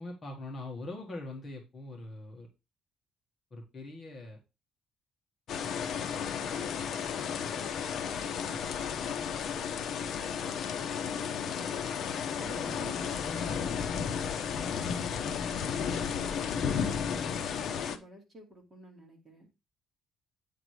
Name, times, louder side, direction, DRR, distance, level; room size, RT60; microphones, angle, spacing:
voice 1, 0.0-2.5 3.5-4.4, left 2 dB, 30° left, 0 dB, 1.8 m, -42 dB
sound 1, 5.5-18.0, left 7 dB, 55° left, 0.8 m, -33 dB
voice 2, 8.2-8.6 12.3-13.8 14.2-16.8 17.5-19.5, right 2 dB, 20° right, -1 dB, 2.7 m, -51 dB
9.1 x 3.9 x 4.8 m, 0.26 s
cardioid pair, 155°, 0 cm